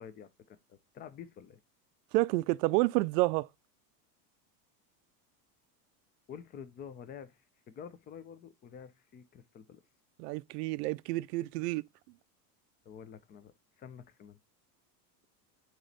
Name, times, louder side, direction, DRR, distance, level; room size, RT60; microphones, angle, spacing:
voice 1, 0.0-1.6 6.3-9.8 12.8-14.4, left 7 dB, 20° left, 0.5 m, -49 dB
voice 2, 2.1-3.5 10.2-11.8, right 20 dB, 75° right, 0.5 m, -29 dB
9.0 x 3.1 x 3.9 m
supercardioid pair, 140°, 49 cm